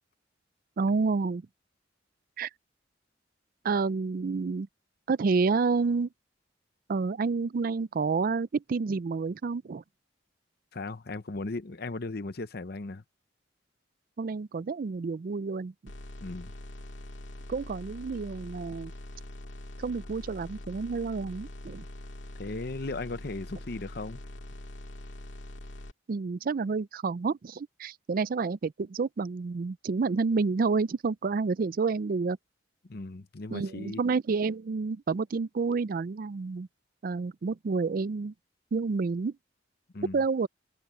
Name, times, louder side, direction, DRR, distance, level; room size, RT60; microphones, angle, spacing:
voice 1, 0.8-1.4 2.4-2.5 3.6-4.7 5.1-6.1 6.9-9.8 14.2-15.7 17.5-18.9 19.8-21.8 26.1-32.4 33.5-36.7 37.0-38.3 38.7-39.3 40.1-40.5, right 4 dB, 50° right, 0.4 m, -29 dB
voice 2, 10.7-13.0 16.2-16.5 22.4-24.2 32.8-34.0 39.9-40.2, left 2 dB, 55° left, 0.9 m, -37 dB
sound 1, 15.9-25.9, left 1 dB, 75° left, 2.1 m, -43 dB
head